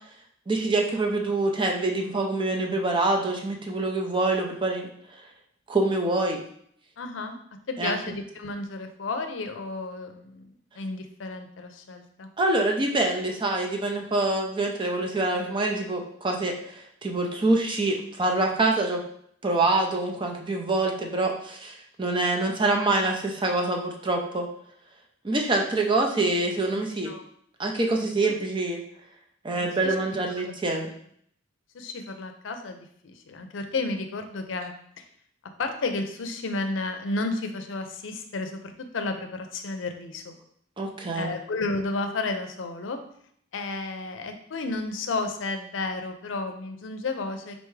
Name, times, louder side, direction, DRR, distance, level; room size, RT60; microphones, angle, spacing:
voice 1, 0.5-5.2 5.7-6.4 7.8-7.9 12.4-19.0 19.4-24.5 25.2-27.1 27.6-28.8 29.4-30.9 40.8-41.3, right 2 dB, 25° right, 2 dB, 0.6 m, -25 dB
voice 2, 7.0-7.4 7.7-12.3 26.7-27.2 28.0-28.3 29.5-29.9 31.7-32.8 33.0-35.0 35.6-38.6 38.9-40.4 41.1-43.0 43.5-47.6, left 3 dB, 75° left, 6 dB, 0.5 m, -32 dB
4.1 x 3.4 x 3.2 m, 0.65 s
head